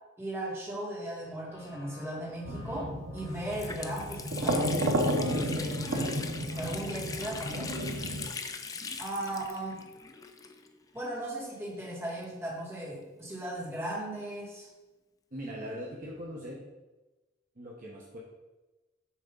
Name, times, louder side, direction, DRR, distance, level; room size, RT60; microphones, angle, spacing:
voice 1, 0.2-4.7 5.3-6.2 6.5-7.7 9.0-9.8 10.9-14.7, right 1 dB, 15° right, -7 dB, 2.3 m, -37 dB
sound 1, 1.5-7.5, equal, 65° left, 1.8 m, -52 dB
sound 2, 2.4-8.3, right 1 dB, 80° right, 0.8 m, -32 dB
Water tap faucet, 2.7-2.8 3.2-10.9 11.2-11.3 12.1-13.6, left 4 dB, 20° left, 0.4 m, -41 dB
voice 2, 15.3-16.6 17.6-18.2, equal, 45° right, -4 dB, 1.0 m, -41 dB
7.2 x 3.6 x 5.4 m, 1.1 s
head